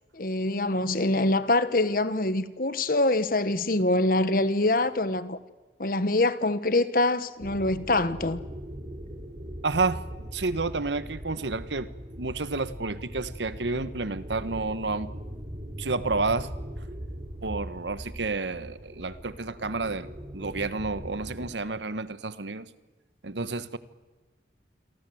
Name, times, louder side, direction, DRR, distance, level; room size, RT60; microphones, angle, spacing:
voice 1, 0.1-5.4 5.8-8.4, left 2 dB, 50° left, 1.3 m, -24 dB
sound 1, 7.4-21.5, equal, 35° right, 3.6 m, -40 dB
voice 2, 9.6-10.0 10.3-11.9 12.2-15.1 15.8-16.5 17.4-22.7 23.2-23.8, right 3 dB, 85° right, 1.3 m, -30 dB
28.0 x 23.5 x 7.9 m
head